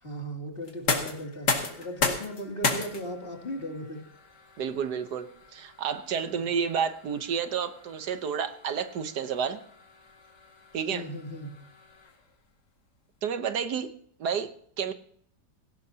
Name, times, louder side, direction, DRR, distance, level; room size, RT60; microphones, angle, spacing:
voice 1, 0.0-4.0 10.9-11.6, equal, 35° left, 1 dB, 2.9 m, -37 dB
sound 1, 0.6-12.4, left 4 dB, 80° left, 2.6 m, -35 dB
voice 2, 4.6-5.3 5.5-9.6 10.7-11.1 13.2-13.9 14.2-14.5 14.8-14.9, right 7 dB, 75° right, 10 dB, 1.5 m, -30 dB
18.0 x 17.0 x 2.8 m, 0.63 s
omnidirectional pair, 1.8 m